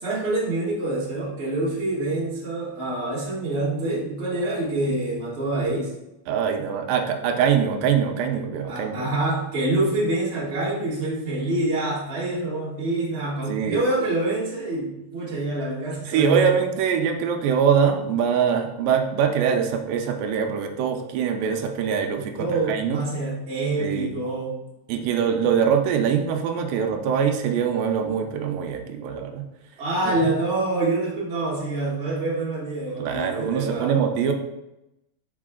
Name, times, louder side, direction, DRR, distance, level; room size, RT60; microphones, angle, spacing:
voice 1, 0.0-5.9 8.7-16.5 22.4-24.6 29.8-34.0, right 2 dB, 25° right, -7 dB, 1.4 m, -26 dB
voice 2, 6.3-9.0 13.5-13.8 16.0-23.0 23.8-24.1 24.9-29.5 30.1-30.3 33.0-34.3, right 7 dB, 85° right, 5 dB, 2.4 m, -23 dB
5.9 x 4.8 x 3.7 m, 0.91 s
omnidirectional pair, 3.9 m